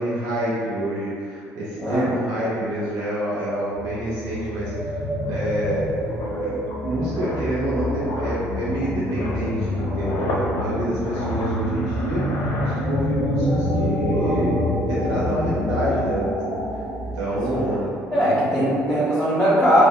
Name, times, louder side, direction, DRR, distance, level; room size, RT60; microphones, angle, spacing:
voice 1, 0.0-5.9 6.3-14.5 14.9-18.7, right 1 dB, 65° right, -9 dB, 0.7 m, -27 dB
sound 1, 3.8-17.9, left 1 dB, 15° right, 1.2 m, -27 dB
sound 2, 3.9-4.0 4.3-13.4 13.7-13.9, left 1 dB, 55° left, 0.7 m, -34 dB
voice 2, 18.1-19.8, equal, 10° left, -10 dB, 1.1 m, -19 dB
2.6 x 2.2 x 3.5 m, 2.2 s
hypercardioid pair, 55°, 7 cm